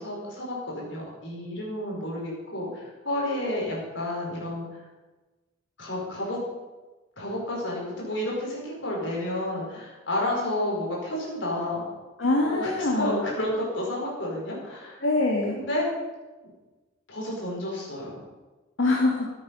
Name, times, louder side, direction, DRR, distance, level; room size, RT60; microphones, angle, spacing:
voice 1, 0.0-4.8 5.8-6.4 7.2-11.8 12.5-15.0 15.5-15.9 17.1-18.1, left 1 dB, 65° left, -3 dB, 5.1 m, -31 dB
voice 2, 12.2-13.2 15.0-15.6 18.8-19.3, left 2 dB, 85° left, -2 dB, 1.9 m, -24 dB
14.5 x 9.6 x 5.5 m, 1.2 s
head